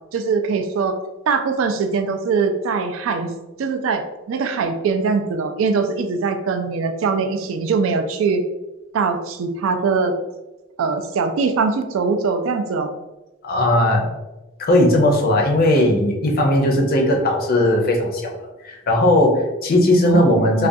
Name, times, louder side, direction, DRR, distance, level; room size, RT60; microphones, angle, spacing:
voice 1, 0.1-1.0 1.3-3.3 3.6-4.0 4.3-8.4 8.9-10.1 10.8-12.9 20.0-20.7, right 4 dB, 75° right, 8 dB, 0.3 m, -22 dB
voice 2, 13.4-14.1 14.7-20.7, left 1 dB, 50° left, 1 dB, 0.5 m, -17 dB
2.4 x 2.2 x 2.5 m, 1.0 s
head